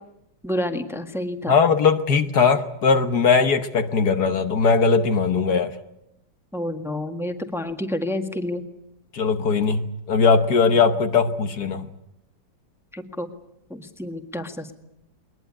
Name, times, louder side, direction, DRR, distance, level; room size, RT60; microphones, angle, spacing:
voice 1, 0.4-1.5 6.5-8.6 12.9-13.3 13.7-14.7, left 1 dB, ahead, 6 dB, 1.5 m, -29 dB
voice 2, 1.5-5.7 9.1-11.9, left 5 dB, 60° left, 8 dB, 1.6 m, -19 dB
21.5 x 20.5 x 9.9 m, 0.82 s
omnidirectional pair, 2.0 m